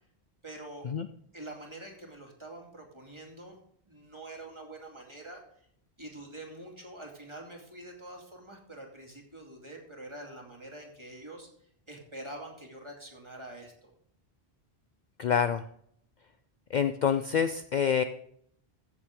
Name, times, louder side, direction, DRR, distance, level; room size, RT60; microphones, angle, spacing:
voice 1, 0.4-0.9 1.3-3.6 3.9-5.4 6.0-11.5 11.9-13.9, right 1 dB, 30° right, 0 dB, 2.7 m, -45 dB
voice 2, 15.2-15.6 16.7-18.0, left 7 dB, 55° left, 10 dB, 0.6 m, -27 dB
15.5 x 7.1 x 3.7 m, 0.66 s
omnidirectional pair, 1.0 m